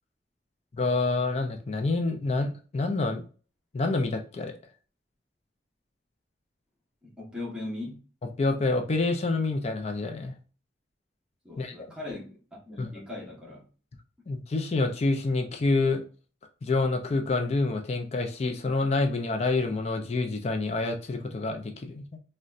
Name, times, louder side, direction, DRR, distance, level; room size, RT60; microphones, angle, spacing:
voice 1, 0.8-3.2 3.7-4.6 8.4-10.3 11.6-11.9 12.8-12.9 14.3-16.0 16.6-22.2, left 3 dB, 35° left, 0.4 m, -27 dB
voice 2, 7.0-8.0 11.4-13.6, left 2 dB, 5° right, 1.0 m, -39 dB
3.8 x 2.1 x 2.4 m
head